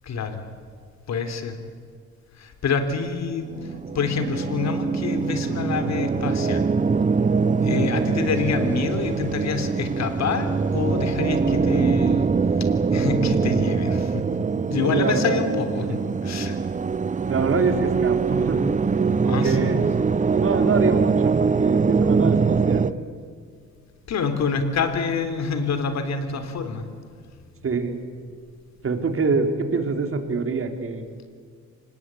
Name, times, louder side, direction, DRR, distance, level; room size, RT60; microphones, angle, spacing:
voice 1, 0.0-0.5 1.1-1.6 2.4-6.7 7.6-12.3 12.6-14.2 14.7-16.6 19.3-19.8 24.1-27.1, left 5 dB, 60° left, 8 dB, 3.5 m, -27 dB
sound 1, 3.5-22.9, right 5 dB, 25° right, 0.7 m, -23 dB
voice 2, 14.8-15.4 15.9-16.0 17.3-18.7 19.2-19.8 20.3-22.9 27.6-28.0 28.8-31.0, right 4 dB, 45° right, 6 dB, 3.5 m, -25 dB
25.5 x 20.5 x 8.5 m, 2.1 s
cardioid pair, 90°, 30 cm